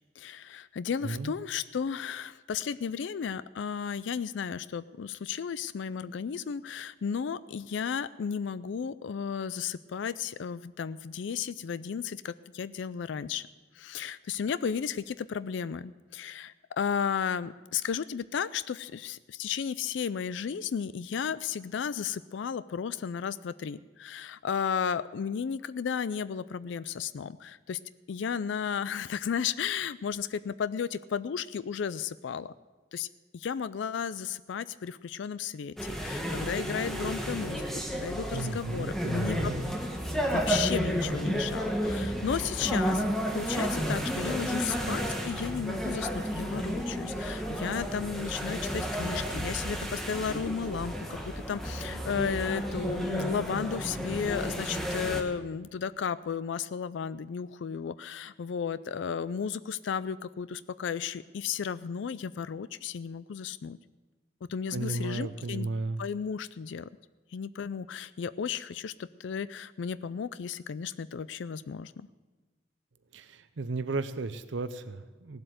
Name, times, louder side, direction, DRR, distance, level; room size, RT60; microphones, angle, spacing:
voice 1, 0.2-13.5 13.7-27.8 28.1-32.5 32.9-33.1 33.3-39.5 40.3-43.0 43.3-63.8 64.5-65.7 66.0-66.9 67.3-72.1, left 7 dB, 75° left, 16 dB, 0.4 m, -34 dB
sound 1, 35.8-55.2, equal, ahead, 1.2 m, -32 dB
voice 2, 38.3-39.6 64.7-66.0 73.1-75.4, right 3 dB, 75° right, 11 dB, 0.6 m, -34 dB
17.0 x 7.8 x 7.8 m, 1.3 s
head